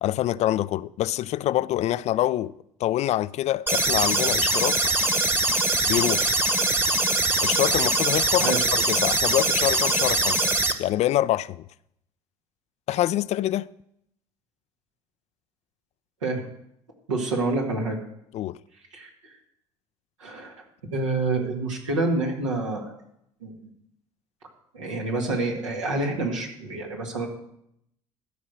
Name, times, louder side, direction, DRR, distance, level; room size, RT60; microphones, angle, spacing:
voice 1, 0.0-2.5 2.8-4.8 5.9-6.4 7.4-8.6 8.9-10.5 10.8-11.7 12.9-13.7 18.3-18.6, left 13 dB, 45° left, 0.4 m, -25 dB
sound 1, 3.7-10.7, right 2 dB, 15° right, 1.2 m, -22 dB
voice 2, 17.1-18.0 18.9-19.1 20.2-20.5 20.9-22.9 23.4-23.5 24.7-27.3, right 2 dB, 85° right, 2.0 m, -27 dB
13.5 x 5.3 x 6.6 m
figure-of-eight pair, 60°, 16 cm